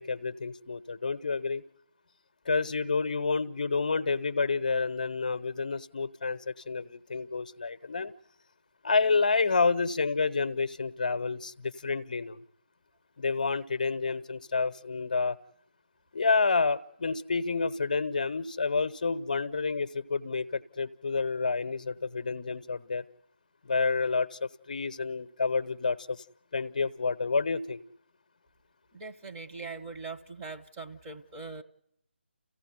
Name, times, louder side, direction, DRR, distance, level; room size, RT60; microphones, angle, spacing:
voice 1, 0.0-1.6 2.5-8.1 8.8-12.4 13.2-15.4 16.1-23.0 23.6-26.2 26.5-27.8, left 4 dB, 45° left, 11 dB, 0.9 m, -29 dB
voice 2, 28.9-31.6, right 4 dB, 15° right, 0 dB, 1.1 m, -41 dB
30.0 x 15.5 x 9.5 m, 0.78 s
figure-of-eight pair, 155°, 6 cm